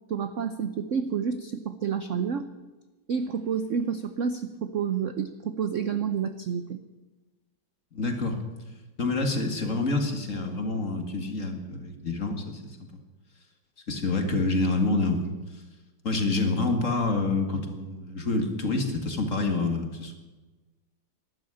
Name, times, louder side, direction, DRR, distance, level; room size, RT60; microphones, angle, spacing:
voice 1, 0.1-2.5 3.1-6.8, right 7 dB, 65° right, 10 dB, 0.7 m, -29 dB
voice 2, 7.9-8.4 9.0-12.8 13.9-15.2 15.5-15.6 16.0-20.2, left 3 dB, 40° left, 5 dB, 2.2 m, -27 dB
12.5 x 11.5 x 9.9 m, 1.2 s
omnidirectional pair, 2.2 m